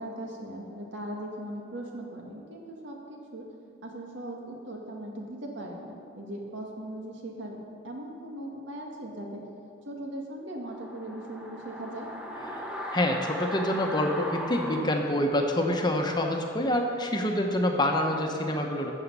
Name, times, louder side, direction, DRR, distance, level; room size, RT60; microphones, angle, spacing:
voice 1, 0.0-3.5 3.8-7.6 7.8-9.4 9.8-12.1, right 1 dB, 80° right, 0 dB, 1.9 m, -39 dB
sound 1, 10.7-15.8 16.1-16.2, equal, 5° right, 1.0 m, -37 dB
voice 2, 12.9-18.9, left 1 dB, 25° left, 2 dB, 1.0 m, -26 dB
13.0 x 7.3 x 5.5 m, 2.5 s
head